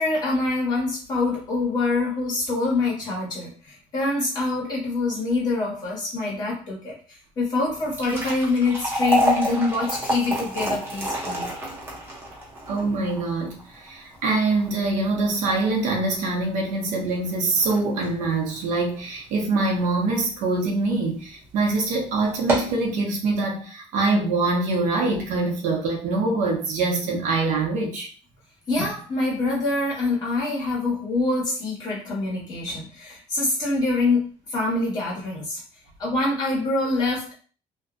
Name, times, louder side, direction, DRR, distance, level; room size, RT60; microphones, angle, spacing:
voice 1, 0.0-7.0 7.4-11.5 28.7-34.2 34.5-35.6 36.0-37.3, left 2 dB, 30° left, -6 dB, 1.2 m, -25 dB
sound 1, 7.7-20.0 20.4-20.5 21.3-21.4 21.8-21.9 22.3-22.8, equal, 15° right, 0.7 m, -29 dB
voice 2, 12.7-28.1, right 3 dB, 75° right, 0 dB, 0.7 m, -24 dB
2.6 x 2.2 x 2.5 m, 0.39 s
cardioid pair, 170°, 13 cm